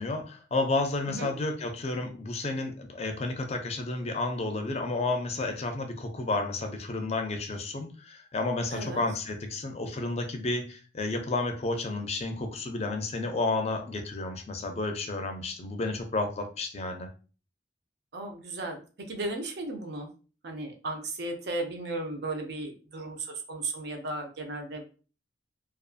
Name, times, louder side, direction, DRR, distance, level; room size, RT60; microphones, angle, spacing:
voice 1, 0.0-17.1, left 2 dB, 35° left, 5 dB, 0.4 m, -31 dB
voice 2, 8.7-9.0 18.1-20.1 20.4-24.9, right 2 dB, 65° right, 3 dB, 0.6 m, -35 dB
2.5 x 2.4 x 2.4 m, 0.36 s
head